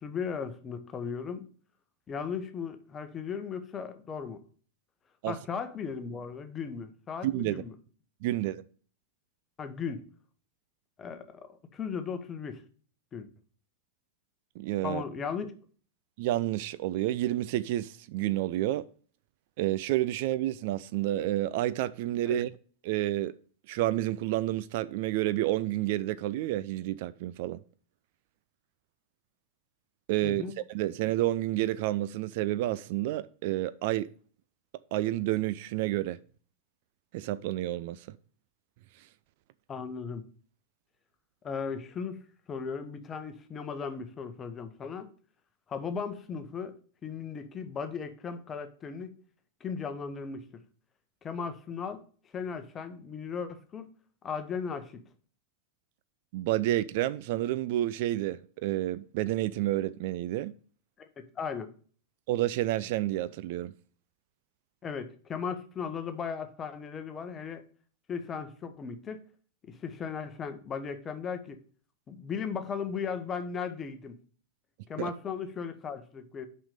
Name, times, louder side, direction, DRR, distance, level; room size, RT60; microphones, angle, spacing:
voice 1, 0.0-1.5 2.1-4.4 5.3-7.7 9.6-10.0 11.0-12.6 13.1-13.3 14.8-15.5 22.3-22.4 30.2-30.5 39.7-40.2 41.4-42.2 42.5-45.1 45.7-46.8 47.0-49.1 49.6-50.6 51.2-52.0 52.3-53.9 54.2-55.0 61.2-61.7 64.8-67.6 68.1-69.2 69.8-71.6 72.1-74.2 74.9-76.5, left 6 dB, 25° left, 1.1 m, -36 dB
voice 2, 7.2-7.6 8.2-8.6 14.6-15.0 16.2-18.9 19.6-22.5 22.8-23.3 23.7-27.6 30.1-34.1 34.9-36.2 37.1-38.1 56.3-60.5 62.3-63.7 75.0-75.1, right 15 dB, 50° right, 0.4 m, -30 dB
5.9 x 5.6 x 6.5 m
figure-of-eight pair, 90°, 0 cm